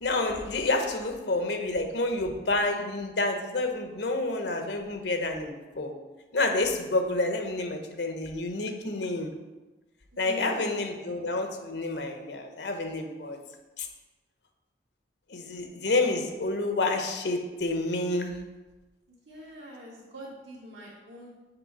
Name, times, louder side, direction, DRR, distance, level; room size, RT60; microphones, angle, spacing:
voice 1, 0.0-5.9 6.3-9.3 10.2-13.4 13.8-13.9 15.3-18.3, left 2 dB, 70° left, 4 dB, 0.9 m, -29 dB
voice 2, 10.1-10.7 19.1-21.3, equal, 75° right, -8 dB, 1.7 m, -43 dB
6.9 x 3.3 x 5.9 m, 1.2 s
head